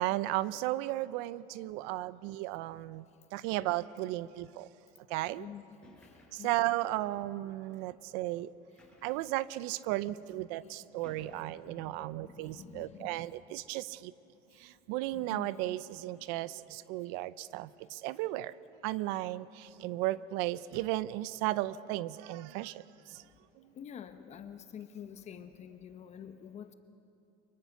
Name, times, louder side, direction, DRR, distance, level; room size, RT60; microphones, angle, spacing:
voice 1, 0.0-3.0 3.3-4.7 5.1-5.5 6.3-8.5 9.0-14.1 14.6-18.5 18.8-23.2, right 16 dB, 70° right, 17 dB, 0.6 m, -35 dB
voice 2, 5.4-6.5 10.5-13.3 15.1-15.5 18.9-19.0 23.7-26.7, left 8 dB, 35° left, 9 dB, 1.0 m, -49 dB
sound 1, 5.8-6.6 7.5-7.6 8.8-9.3 10.2-10.3 11.0-11.8, left 2 dB, 5° left, 6.5 m, -58 dB
24.5 x 21.5 x 5.9 m, 2.8 s
supercardioid pair, 130°, 20 cm